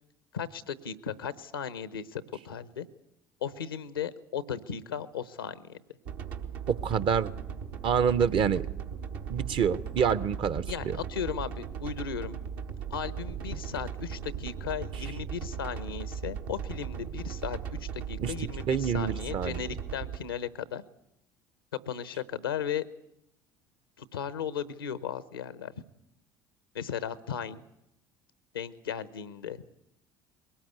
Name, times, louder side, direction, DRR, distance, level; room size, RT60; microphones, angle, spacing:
voice 1, 0.3-2.9 3.4-5.8 10.7-12.3 12.9-20.8 21.7-22.8 24.0-25.7 26.7-27.6 28.5-29.6, left 7 dB, 90° left, 16 dB, 0.8 m, -36 dB
sound 1, 6.1-20.2, right 7 dB, 75° right, 1.4 m, -38 dB
voice 2, 6.7-7.3 7.8-8.6 9.3-11.0 18.2-18.3 18.7-19.6, right 7 dB, 50° right, 15 dB, 0.8 m, -27 dB
21.5 x 18.5 x 8.0 m, 0.82 s
hypercardioid pair, 65°, 12 cm